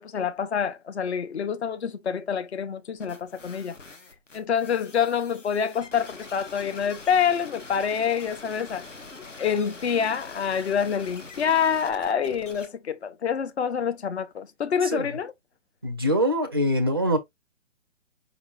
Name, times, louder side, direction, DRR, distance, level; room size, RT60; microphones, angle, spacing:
voice 1, 0.0-3.8 4.3-8.8 9.4-15.3, left 7 dB, 60° left, 0.7 m, -26 dB
sound 1, 3.0-12.7, left 3 dB, 75° left, 1.3 m, -44 dB
voice 2, 14.8-15.2 15.8-17.2, equal, 20° right, 0.4 m, -24 dB
4.9 x 3.6 x 2.3 m
figure-of-eight pair, 135°, 37 cm